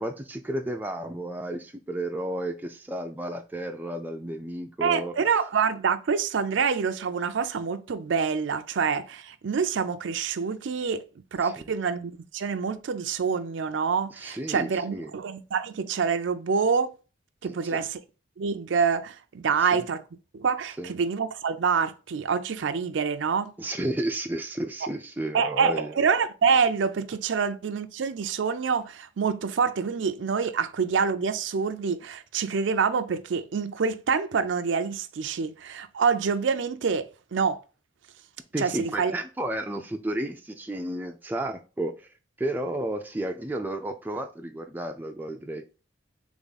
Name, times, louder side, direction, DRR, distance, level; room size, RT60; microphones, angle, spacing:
voice 1, 0.0-5.1 11.4-11.6 14.2-15.1 17.4-17.8 19.6-19.8 20.8-20.9 23.6-26.0 38.5-41.9 42.4-45.8, right 1 dB, 10° right, 0.4 m, -32 dB
voice 2, 4.8-11.1 11.3-16.9 17.4-18.0 18.4-20.0 20.3-23.5 25.3-37.6 38.6-39.1, right 6 dB, 70° right, 0.4 m, -26 dB
3.6 x 3.6 x 4.0 m
head